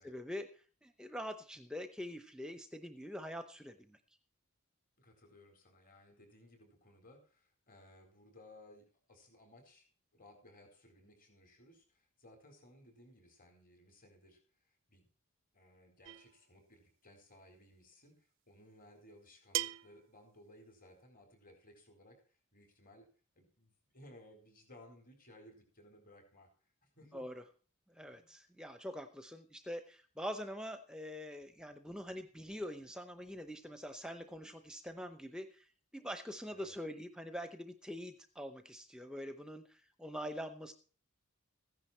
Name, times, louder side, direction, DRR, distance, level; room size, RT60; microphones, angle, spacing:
voice 1, 0.0-4.0 27.1-27.4 27.9-40.7, equal, 5° right, 8 dB, 0.8 m, -44 dB
voice 2, 5.0-15.0 15.5-23.1 23.3-27.3 28.1-28.3 36.5-36.7, left 1 dB, 40° left, 4 dB, 4.3 m, -60 dB
sound 1, 16.0-16.4 17.9-18.0 19.5-20.0, right 14 dB, 60° right, 0.5 m, -38 dB
15.5 x 10.5 x 4.4 m, 0.40 s
head